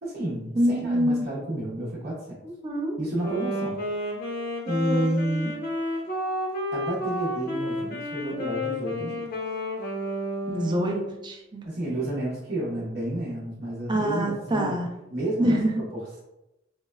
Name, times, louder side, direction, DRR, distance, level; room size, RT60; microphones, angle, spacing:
voice 1, 0.0-2.4 3.0-3.8 4.6-5.6 6.7-9.2 11.6-14.7 15.1-15.6 15.9-16.2, right 1 dB, 55° right, -7 dB, 0.7 m, -30 dB
voice 2, 0.5-1.2 2.4-3.0 4.9-5.0 10.5-11.6 13.9-14.9 15.4-15.8, equal, 25° right, 0 dB, 0.4 m, -25 dB
Wind instrument woodwind instrument, 3.2-11.2, left 1 dB, 50° left, 0.6 m, -31 dB
4.3 x 2.0 x 2.2 m, 0.93 s
head